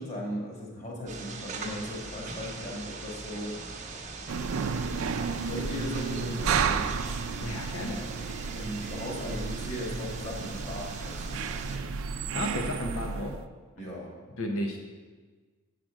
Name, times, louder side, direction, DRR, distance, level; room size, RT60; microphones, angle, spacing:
voice 1, 0.0-3.9 5.4-7.0 8.5-11.5 13.8-14.1, left 1 dB, 35° left, -2 dB, 1.6 m, -37 dB
sound 1, 1.1-11.8, right 4 dB, 35° right, 0.8 m, -42 dB
sound 2, 1.6-11.8, equal, 5° right, 0.5 m, -49 dB
sound 3, 4.3-13.4, right 5 dB, 80° right, 0.4 m, -32 dB
voice 2, 7.4-8.0 12.3-13.4 14.4-14.8, left 1 dB, 80° left, 2 dB, 0.8 m, -33 dB
7.6 x 5.0 x 6.1 m, 1.4 s
head